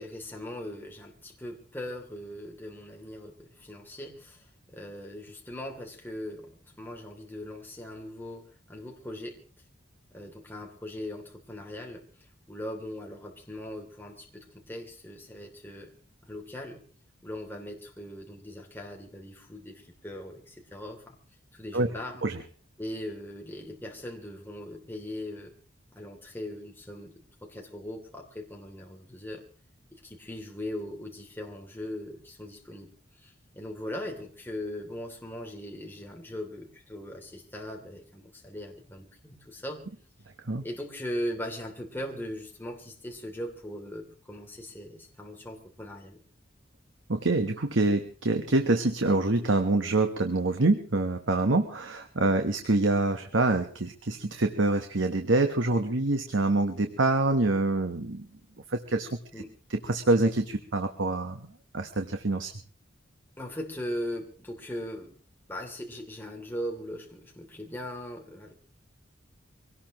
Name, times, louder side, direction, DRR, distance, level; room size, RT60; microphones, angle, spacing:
voice 1, 0.0-9.4 10.1-12.0 12.5-15.9 16.2-16.8 17.2-21.2 21.5-22.2 22.8-25.5 25.9-27.1 27.4-29.4 29.9-39.8 40.6-46.2 59.3-59.5 63.4-65.2 65.5-68.5, left 1 dB, 10° left, 0 dB, 3.0 m, -39 dB
voice 2, 47.1-58.3 58.7-59.2 59.7-61.5 61.7-62.5, right 2 dB, 90° right, 6 dB, 1.3 m, -26 dB
24.0 x 18.5 x 3.1 m, 0.42 s
head